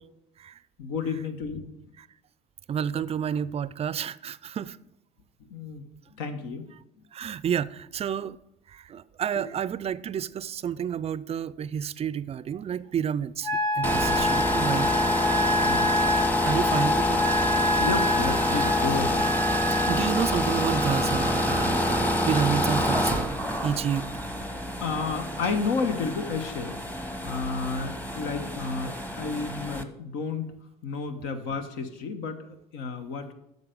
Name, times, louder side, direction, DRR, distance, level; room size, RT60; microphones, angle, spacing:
voice 1, 0.8-1.7 5.4-5.8 6.2-6.7 9.4-9.5 15.6-15.9 17.8-19.3 24.8-26.8 27.2-30.5 30.8-33.3, left 4 dB, 75° left, 1.2 m, -31 dB
voice 2, 2.7-4.8 7.1-8.4 8.7-13.5 13.8-14.9 15.7-15.9 16.4-17.2 19.7-24.1, right 8 dB, 30° right, 0.4 m, -30 dB
Wind instrument woodwind instrument, 13.4-20.0, left 2 dB, 25° left, 1.9 m, -27 dB
sound 1, 13.8-29.8, left 1 dB, 10° left, 1.0 m, -27 dB
9.4 x 6.6 x 5.2 m
supercardioid pair, 85°, 19 cm